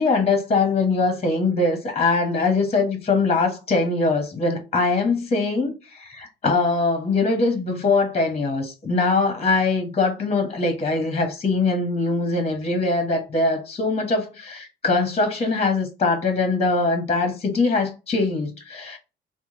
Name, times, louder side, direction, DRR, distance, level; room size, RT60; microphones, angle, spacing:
voice 1, 0.0-19.0, left 3 dB, 30° left, 1.1 m, -22 dB
3.4 x 2.2 x 2.8 m
cardioid pair, 90°, 20 cm